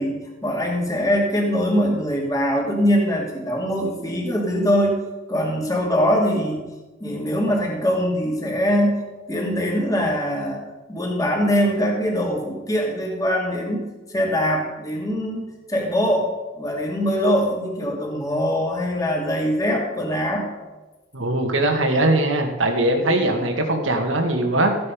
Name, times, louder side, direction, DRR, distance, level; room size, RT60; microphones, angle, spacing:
voice 1, 0.0-5.0 5.3-6.7 7.0-10.6 10.9-13.8 14.1-16.3 16.5-20.5 23.2-23.4, equal, 20° left, -1 dB, 2.6 m, -22 dB
voice 2, 21.1-24.8, right 1 dB, 85° right, 4 dB, 2.0 m, -21 dB
14.5 x 9.6 x 5.3 m, 1.2 s
head